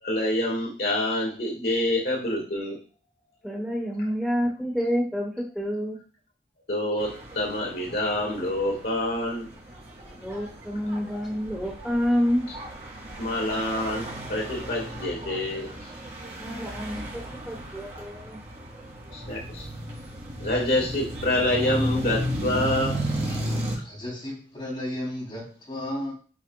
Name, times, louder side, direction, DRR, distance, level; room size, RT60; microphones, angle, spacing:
voice 1, 0.0-2.8 6.7-9.5 13.2-15.7 19.1-19.7 20.4-23.0, left 1 dB, 55° left, -2 dB, 1.8 m, -27 dB
voice 2, 3.4-6.0 10.2-12.5 16.4-18.4, equal, 5° right, -2 dB, 0.9 m, -28 dB
sound 1, 7.0-23.8, equal, 35° right, 2.2 m, -34 dB
voice 3, 23.2-26.1, left 1 dB, 25° left, -4 dB, 3.4 m, -34 dB
8.5 x 4.9 x 2.3 m, 0.39 s
head